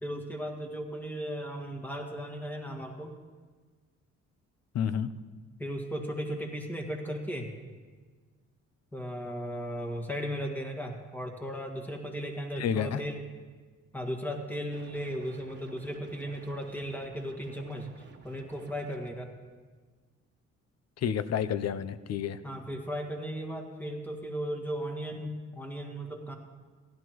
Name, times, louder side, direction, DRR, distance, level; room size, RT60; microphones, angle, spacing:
voice 1, 0.0-3.2 5.6-7.5 8.9-13.2 13.9-19.3 22.4-26.3, equal, 5° left, 2 dB, 1.8 m, -36 dB
voice 2, 4.7-5.1 12.6-13.0 21.0-22.4, left 8 dB, 55° left, 15 dB, 0.6 m, -30 dB
sound 1, 14.7-19.1, right 4 dB, 35° right, 1.3 m, -53 dB
16.0 x 11.5 x 3.0 m, 1.4 s
cardioid pair, 90°, 30 cm